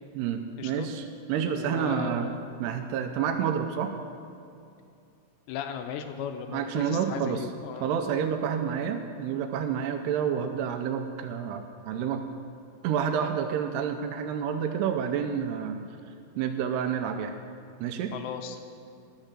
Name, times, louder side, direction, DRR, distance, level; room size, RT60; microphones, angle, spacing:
voice 1, 0.1-2.3 2.6-3.9 6.5-7.5 7.8-12.2 12.8-15.8 16.4-17.3 17.8-18.1, right 8 dB, 80° right, 6 dB, 2.5 m, -29 dB
voice 2, 1.5-2.4 5.5-7.9 18.1-18.6, left 8 dB, 85° left, 6 dB, 2.8 m, -36 dB
11.5 x 6.7 x 7.4 m, 2.5 s
omnidirectional pair, 5.1 m